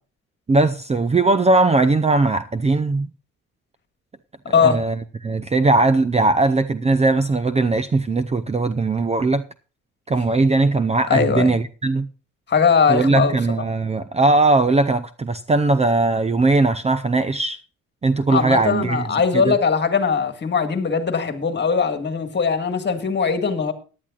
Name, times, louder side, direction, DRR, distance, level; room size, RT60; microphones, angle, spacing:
voice 1, 0.5-3.1 4.6-5.0 5.2-9.4 10.1-12.1 12.9-17.6 18.0-19.1 19.3-19.5, right 3 dB, 20° right, 0.6 m, -19 dB
voice 2, 4.5-4.8 11.1-11.6 12.5-13.3 18.3-23.7, left 6 dB, 35° left, 1.8 m, -20 dB
17.5 x 10.5 x 2.4 m
cardioid pair, 90°, 30 cm